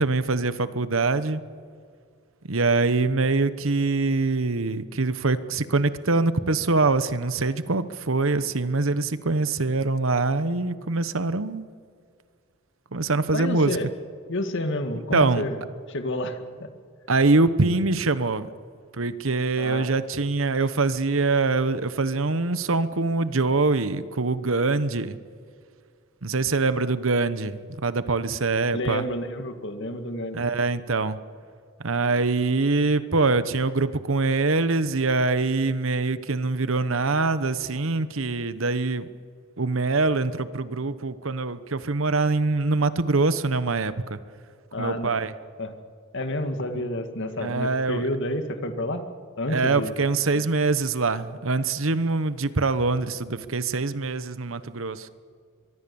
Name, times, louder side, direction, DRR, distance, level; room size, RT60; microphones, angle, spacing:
voice 1, 0.0-1.4 2.4-11.7 12.9-13.8 15.1-15.5 17.1-18.5 19.0-25.2 26.2-29.0 30.3-31.2 31.8-39.1 39.6-44.2 44.8-45.3 46.7-46.8 47.4-48.1 49.5-55.1, right 3 dB, 70° right, 13 dB, 1.1 m, -24 dB
voice 2, 13.3-13.9 14.3-15.6 15.9-16.7 19.6-19.9 28.7-30.4 44.7-45.1 45.6-45.7 46.1-49.0 49.4-50.0, left 1 dB, 60° left, 7 dB, 2.1 m, -29 dB
24.0 x 23.5 x 7.1 m, 2.1 s
head